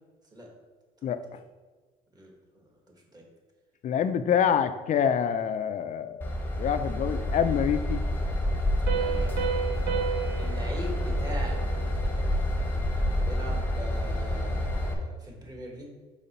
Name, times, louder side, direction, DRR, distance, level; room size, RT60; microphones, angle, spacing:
voice 1, 1.0-1.4 3.8-6.3 6.6-8.0, left 8 dB, 45° left, 11 dB, 0.5 m, -26 dB
voice 2, 2.1-2.6 3.1-3.2 8.9-9.6 10.3-11.6 12.0-12.1 13.1-16.0, equal, 25° right, 0 dB, 1.6 m, -41 dB
Train / Engine, 6.2-14.9, left 1 dB, 10° left, 1.0 m, -28 dB
Piano, 8.9-12.3, right 8 dB, 85° right, 1.1 m, -33 dB
5.3 x 4.9 x 4.3 m, 1.4 s
cardioid pair, 110°, 17 cm